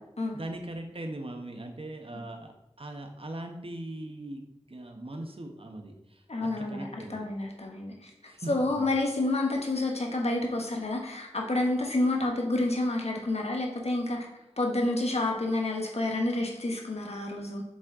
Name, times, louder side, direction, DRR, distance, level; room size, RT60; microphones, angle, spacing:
voice 1, 0.3-4.4 4.7-7.3 8.2-8.5 8.8-8.9, right 1 dB, 55° right, 4 dB, 1.1 m, -40 dB
voice 2, 6.3-8.1 8.5-14.3 14.6-17.6, left 2 dB, 70° left, 1 dB, 1.1 m, -29 dB
7.4 x 4.4 x 3.7 m, 0.88 s
wide cardioid pair, 40°, 11 cm